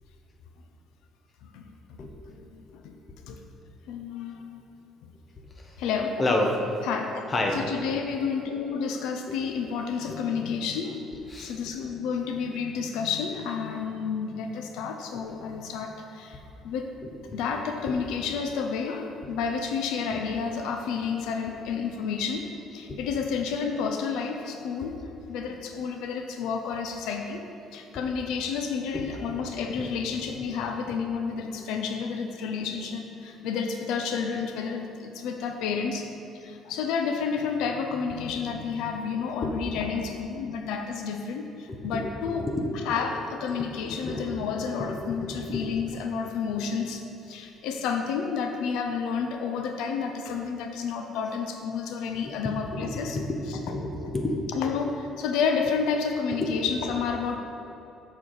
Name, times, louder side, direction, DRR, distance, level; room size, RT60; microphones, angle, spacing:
voice 1, 1.4-2.1 2.4-2.6 2.8-2.9 3.3-3.4 3.9-4.6 5.8-6.2 6.8-7.2 7.5-11.0 11.4-16.9 17.3-36.1 36.3-42.5 42.8-47.0 47.3-53.2 53.5-53.8 54.5-57.4, left 6 dB, 85° left, 4 dB, 0.6 m, -30 dB
voice 2, 6.2-6.6 7.3-8.0 9.3-9.5 10.1-10.2 11.3-11.5 15.1-15.3 17.0-17.4 17.9-18.0 19.2-19.3 22.9-23.0 24.8-24.9 27.9-28.0 28.9-29.0 29.7-29.8 39.4-39.5 41.7-42.7 43.5-43.7 44.0-44.3 44.8-45.7 52.3-53.4 53.7-54.3 56.4-56.5, left 2 dB, 30° left, 1 dB, 1.2 m, -31 dB
7.3 x 7.0 x 4.9 m, 3.0 s
cardioid pair, 110°, 0 cm